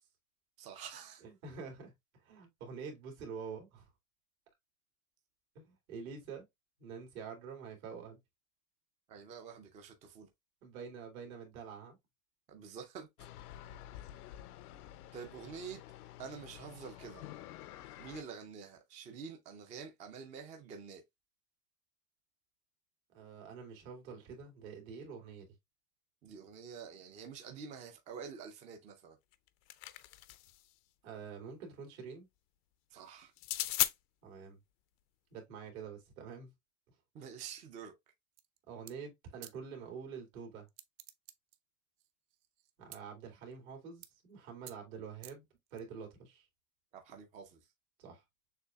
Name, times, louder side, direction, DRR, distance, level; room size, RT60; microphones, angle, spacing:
voice 1, 0.6-1.2 9.1-10.3 12.5-13.1 15.1-15.8 16.2-17.2 18.0-21.0 26.2-29.2 32.9-33.3 37.1-37.9 46.9-47.6, right 6 dB, 20° right, 0.4 m, -47 dB
voice 2, 1.2-1.9 2.2-3.9 5.5-6.4 6.8-8.2 10.6-12.0 23.1-25.5 31.0-32.3 34.2-34.6 35.3-36.5 38.7-40.7 42.8-45.4 45.7-46.5 48.0-48.2, right 6 dB, 70° right, 2.4 m, -47 dB
sound 1, 13.2-18.2, left 12 dB, 90° left, 0.7 m, -50 dB
sound 2, 29.3-30.6 33.4-33.9, left 16 dB, 45° left, 0.4 m, -35 dB
sound 3, 38.3-38.6 38.9-39.0 39.4-39.6 40.7-41.6 42.0-43.0 43.5-43.7 44.0-44.3 44.7-44.8 45.2-45.8, right 14 dB, 55° right, 0.6 m, -52 dB
6.6 x 2.7 x 2.3 m
supercardioid pair, 150°, 44 cm